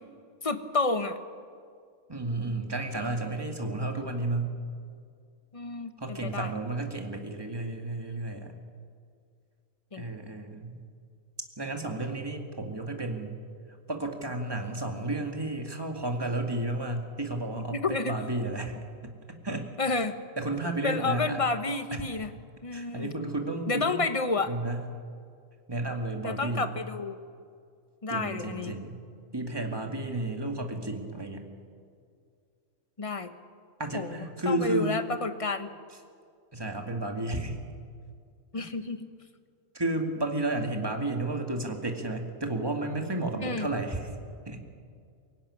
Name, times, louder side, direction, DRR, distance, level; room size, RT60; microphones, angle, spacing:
voice 1, 0.4-1.2 5.5-6.5 9.9-10.0 17.5-18.1 19.8-20.1 20.8-22.3 22.6-23.1 23.7-24.5 26.2-27.2 28.0-28.7 33.0-33.3 33.9-35.7 38.5-39.1 43.4-43.7, left 3 dB, 25° left, 9 dB, 1.1 m, -30 dB
voice 2, 2.1-4.5 6.0-8.5 9.9-10.8 11.6-13.4 13.9-18.7 19.0-19.1 19.4-19.7 20.4-21.4 22.7-24.0 24.5-24.8 25.7-26.7 28.1-29.0 29.3-31.5 33.8-35.0 36.5-37.6 38.5-38.7 39.7-44.2 44.5-44.6, right 2 dB, 15° right, 3 dB, 2.2 m, -32 dB
24.0 x 16.0 x 10.0 m, 2.3 s
omnidirectional pair, 1.4 m